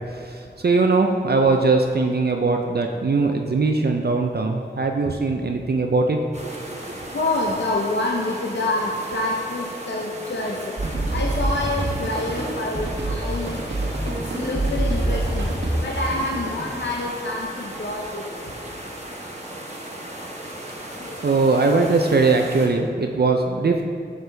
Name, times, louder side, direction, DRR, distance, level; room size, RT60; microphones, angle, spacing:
voice 1, 0.1-6.2 6.7-6.8 21.2-23.8, right 3 dB, 55° right, 3 dB, 0.5 m, -20 dB
sound 1, 6.3-22.7, right 1 dB, 35° right, 1.2 m, -36 dB
voice 2, 7.1-10.7 11.1-13.6 14.0-15.5 15.8-18.2 21.0-21.2, left 2 dB, 70° left, -2 dB, 0.7 m, -27 dB
sound 2, 10.8-16.8, right 1 dB, 75° right, 1.2 m, -26 dB
8.0 x 6.6 x 3.3 m, 2.1 s
wide cardioid pair, 50°, 19 cm